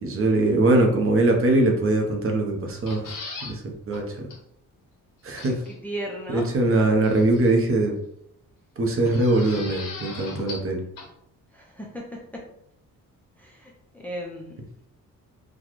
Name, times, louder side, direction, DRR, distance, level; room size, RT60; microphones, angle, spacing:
voice 1, 0.0-3.1 3.4-4.3 5.2-5.6 6.3-7.9 8.8-10.8, right 2 dB, 40° right, 1 dB, 0.7 m, -22 dB
sound 1, 2.7-3.6 3.9-4.0 4.3-4.4 5.4-5.8 7.0-7.6 9.1-10.7 11.0-11.1, left 3 dB, 70° left, 1.0 m, -38 dB
voice 2, 5.5-6.5 11.5-12.4 13.4-14.7, equal, 5° left, -1 dB, 0.5 m, -36 dB
4.1 x 2.2 x 3.0 m, 0.73 s
cardioid pair, 140°, 34 cm